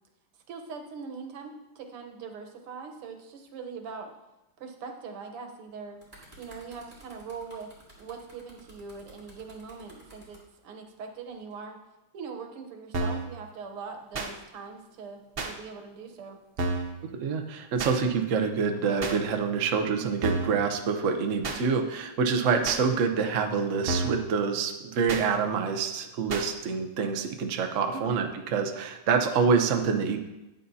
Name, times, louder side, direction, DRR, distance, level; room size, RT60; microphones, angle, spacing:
voice 1, 0.5-4.1 4.6-6.0 6.4-7.7 8.0-11.8 12.1-16.4 27.9-28.3, right 5 dB, 90° right, 4 dB, 2.0 m, -41 dB
sound 1, 5.7-10.4 11.3-11.5, right 1 dB, 10° right, 3.8 m, -53 dB
sound 2, 12.9-13.3 14.1-14.3 15.4-15.5 16.6-16.9 17.8-18.0 19.0-19.2 20.2-20.6 21.4-21.6 22.6-22.8 23.9-24.2 25.1-25.3 26.3-26.5, right 2 dB, 70° right, 0.5 m, -30 dB
voice 2, 17.2-30.2, right 5 dB, 55° right, 4 dB, 0.9 m, -26 dB
13.5 x 9.2 x 2.8 m, 0.98 s
omnidirectional pair, 2.4 m